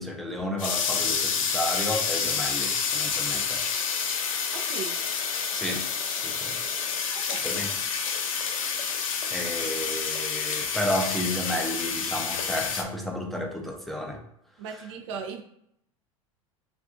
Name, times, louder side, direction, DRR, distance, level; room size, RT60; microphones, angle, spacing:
voice 1, 0.0-3.6 5.5-5.9 6.2-6.6 7.4-7.8 9.3-14.2, equal, ahead, 0 dB, 0.5 m, -32 dB
sound 1, 0.6-12.8, left 6 dB, 70° left, 0.5 m, -29 dB
voice 2, 4.5-5.0 7.1-7.8 14.6-15.4, right 6 dB, 55° right, 4 dB, 0.5 m, -38 dB
2.5 x 2.4 x 3.6 m, 0.75 s
figure-of-eight pair, 80°, 18 cm